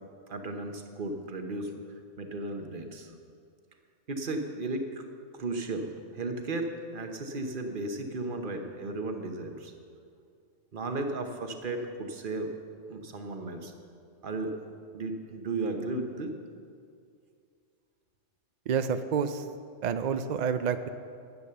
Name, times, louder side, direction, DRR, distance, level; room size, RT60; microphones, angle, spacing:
voice 1, 0.3-1.7 2.2-3.1 4.1-5.0 5.3-9.7 10.7-12.5 12.9-13.7 14.2-14.6 14.9-16.3, right 2 dB, 45° right, 5 dB, 1.1 m, -35 dB
voice 2, 18.7-19.4 19.8-20.9, right 7 dB, 70° right, 10 dB, 0.4 m, -28 dB
10.5 x 8.3 x 6.8 m, 2.3 s
omnidirectional pair, 1.3 m